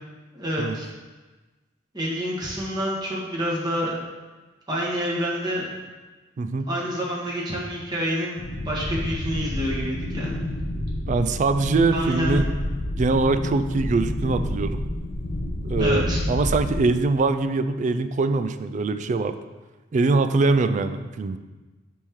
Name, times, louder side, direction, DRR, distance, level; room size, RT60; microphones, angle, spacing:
voice 1, 0.3-0.9 1.9-3.9 4.7-5.6 6.7-8.4 8.6-10.3 11.9-12.4 15.8-16.2, equal, 25° right, -5 dB, 1.5 m, -27 dB
voice 2, 6.4-6.7 11.1-12.5 13.0-14.9 15.6-19.4 19.9-21.4, right 3 dB, 40° right, 10 dB, 0.3 m, -23 dB
sound 1, 8.4-16.8, left 1 dB, 45° left, 0.6 m, -29 dB
11.0 x 3.6 x 3.1 m, 1.2 s
head